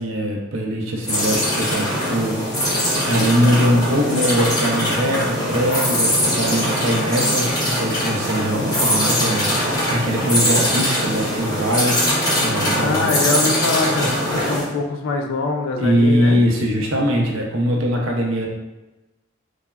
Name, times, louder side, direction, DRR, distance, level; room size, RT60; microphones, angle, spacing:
voice 1, 0.0-12.1 12.4-13.0 14.0-14.1 15.8-18.5, equal, 80° right, 0 dB, 0.5 m, -21 dB
sound 1, 1.0-14.7, equal, 20° left, 0.8 m, -21 dB
voice 2, 12.8-16.4, left 3 dB, 80° left, 3 dB, 0.3 m, -23 dB
3.2 x 2.0 x 2.2 m, 1.0 s
head